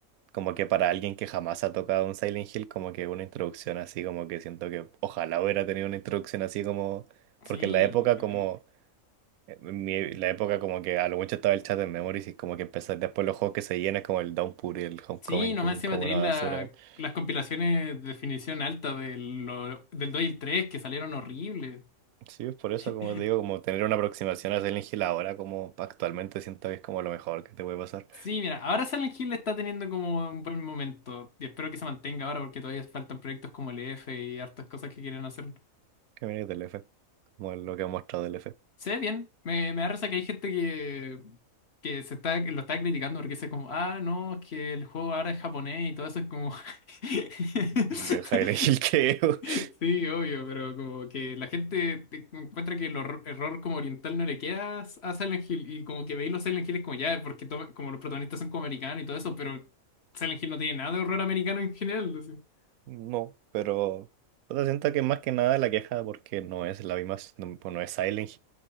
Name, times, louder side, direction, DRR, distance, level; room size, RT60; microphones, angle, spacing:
voice 1, 0.3-7.0 7.5-8.6 9.5-16.7 22.3-28.3 36.2-36.8 37.4-38.4 48.1-49.6 62.9-64.1 64.5-68.4, right 14 dB, 80° right, 1.0 m, -30 dB
voice 2, 7.4-7.9 15.2-16.7 17.0-21.8 22.8-23.2 28.2-35.5 38.8-41.4 41.8-48.7 49.4-59.6 60.1-62.4, left 4 dB, 50° left, 1.6 m, -32 dB
8.1 x 3.9 x 5.5 m
omnidirectional pair, 1.5 m